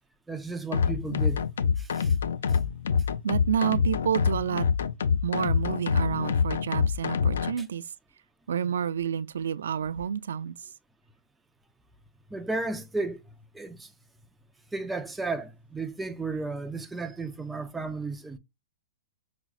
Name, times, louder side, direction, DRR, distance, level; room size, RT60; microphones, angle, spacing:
voice 1, 0.3-1.4 1.8-2.2 2.5-2.6 7.6-7.7 12.3-13.2 13.5-13.9 14.7-18.4, right 3 dB, 5° right, 0.3 m, -34 dB
sound 1, 0.7-7.5, left 6 dB, 80° left, 0.4 m, -26 dB
voice 2, 3.2-4.7 5.2-7.8 8.5-10.5, right 8 dB, 80° right, 0.4 m, -29 dB
5.8 x 2.0 x 2.3 m
hypercardioid pair, 170°, 0 cm